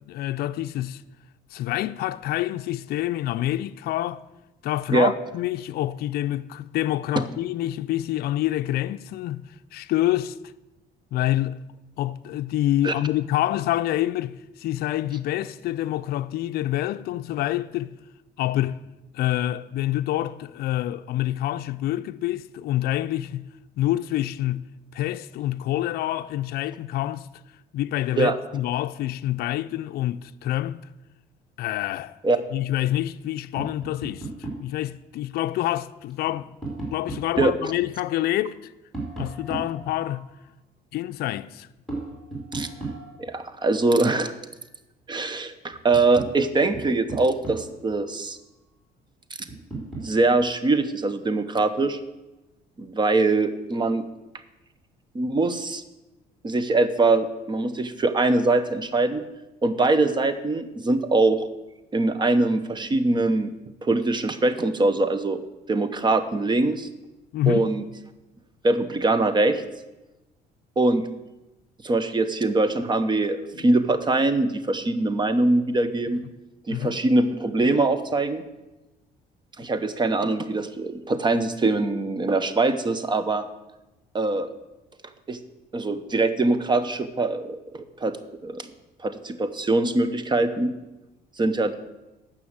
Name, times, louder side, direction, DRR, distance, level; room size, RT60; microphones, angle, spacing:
voice 1, 0.1-1.0 1.5-4.2 4.6-10.4 11.1-11.6 12.0-17.9 18.4-18.8 19.1-27.3 27.7-30.9 31.6-32.1 32.5-36.5 36.9-38.7 39.2-40.3 40.9-41.7 67.3-67.7 73.5-73.7 76.7-77.0, left 14 dB, 65° left, 0.4 m, -27 dB
Tap, 33.6-34.7 36.1-37.6 38.9-40.4 41.9-43.4 45.2-45.3 45.7-47.9 49.5-50.2, right 3 dB, ahead, 3.2 m, -36 dB
voice 2, 43.2-44.3 45.1-48.4 49.4-49.5 50.0-52.0 52.8-54.0 55.1-55.8 56.4-59.2 59.6-61.4 61.9-63.5 63.8-65.4 65.7-66.9 67.5-67.8 68.6-69.6 70.8-71.1 71.8-76.2 76.7-78.4 79.6-83.4 84.1-84.5 85.3-85.4 85.7-88.2 88.4-88.7 89.0-90.7 91.4-91.7, right 2 dB, 25° right, 0.9 m, -23 dB
9.6 x 6.2 x 8.0 m
cardioid pair, 110°, 17 cm